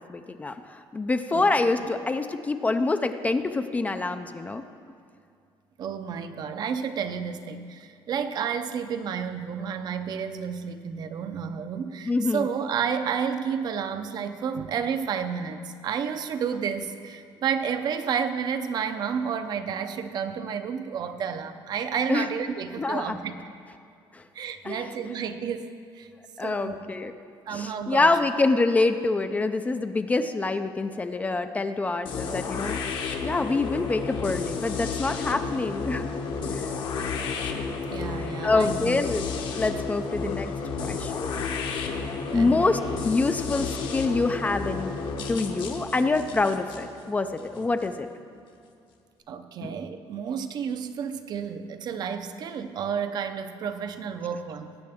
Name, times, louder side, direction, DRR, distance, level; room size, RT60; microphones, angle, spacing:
voice 1, 0.1-4.6 12.1-12.5 22.1-22.3 22.8-23.2 24.1-24.2 24.6-24.9 26.4-27.1 27.5-32.8 33.2-36.1 36.5-36.7 38.4-39.2 39.5-40.5 40.8-41.3 42.3-44.9 45.3-48.1 49.6-49.7, left 3 dB, 15° left, 8 dB, 0.4 m, -26 dB
voice 2, 5.8-23.4 24.3-26.1 26.4-26.9 27.5-28.2 37.9-39.0 42.2-42.6 49.3-54.8, right 7 dB, 45° right, 9 dB, 0.6 m, -31 dB
sound 1, 32.0-47.9, left 4 dB, 60° left, 1.1 m, -32 dB
19.0 x 8.6 x 3.5 m, 2.4 s
cardioid pair, 155°, 9 cm